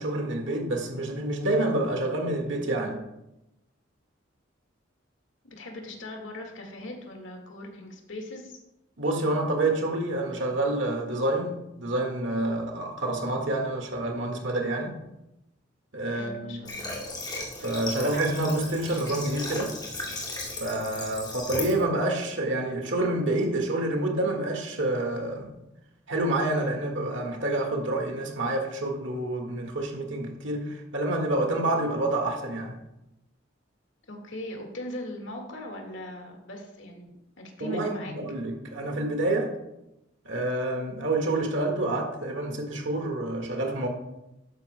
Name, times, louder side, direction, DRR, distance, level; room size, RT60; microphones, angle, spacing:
voice 1, 0.0-3.0 9.0-15.0 15.9-16.6 17.6-19.7 20.6-25.5 26.1-32.8 37.6-39.5 40.3-43.9, right 2 dB, 70° right, 2 dB, 1.8 m, -28 dB
voice 2, 5.4-8.6 16.1-16.9 34.1-38.1, left 1 dB, 75° left, 2 dB, 1.8 m, -40 dB
Water / Water tap faucet, 16.6-21.8, left 2 dB, 20° left, 2.2 m, -35 dB
12.0 x 10.0 x 2.2 m, 0.91 s
head